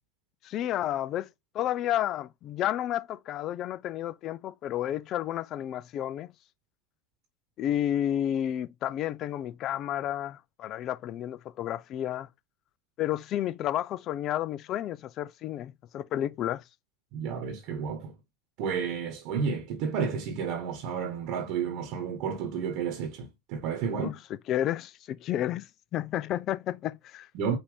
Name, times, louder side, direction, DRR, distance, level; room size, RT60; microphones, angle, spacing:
voice 1, 0.4-1.3 1.5-6.3 7.6-12.3 13.0-16.6 23.9-24.1 24.5-25.7 25.9-27.3, left 12 dB, 45° left, 0.4 m, -31 dB
voice 2, 17.1-18.1 18.6-24.2 27.3-27.6, right 6 dB, 60° right, 1.1 m, -31 dB
5.3 x 2.7 x 3.4 m
hypercardioid pair, 100°, 0 cm